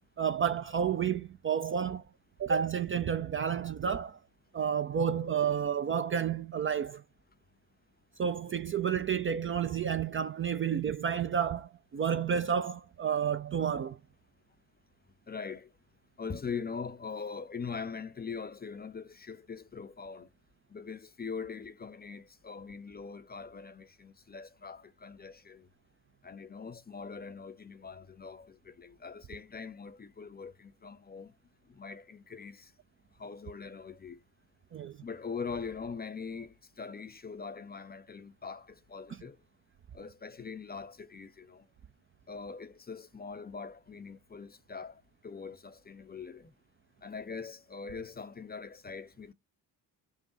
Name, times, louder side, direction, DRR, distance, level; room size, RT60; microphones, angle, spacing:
voice 1, 0.2-2.0 2.4-4.2 4.5-7.0 8.2-14.0 34.7-35.0, right 7 dB, 25° right, 0.4 m, -30 dB
voice 2, 15.3-15.7 16.2-20.3 20.7-25.7 26.2-31.3 31.8-32.7 33.2-34.2 35.0-39.4 39.9-41.6 42.3-46.5 47.0-49.3, left 5 dB, 20° left, 0.5 m, -42 dB
5.5 x 2.2 x 3.7 m
figure-of-eight pair, 40°, 49 cm